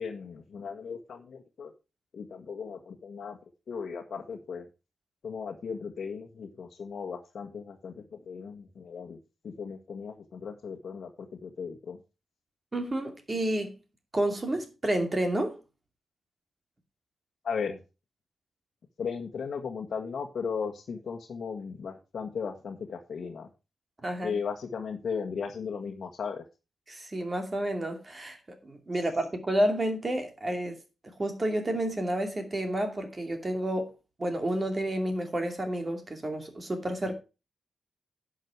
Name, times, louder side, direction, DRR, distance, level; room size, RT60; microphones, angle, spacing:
voice 1, 0.0-1.7 2.1-3.4 3.7-4.7 5.2-9.2 9.4-12.0 17.4-17.8 19.0-23.5 24.2-26.4, left 6 dB, 60° left, 1.6 m, -36 dB
voice 2, 12.7-13.7 14.1-15.5 24.0-24.3 26.9-28.4 28.6-30.8 31.0-33.9 34.2-37.1, right 1 dB, 25° right, 2.5 m, -30 dB
11.0 x 6.5 x 4.7 m
wide cardioid pair, 145°, 0 cm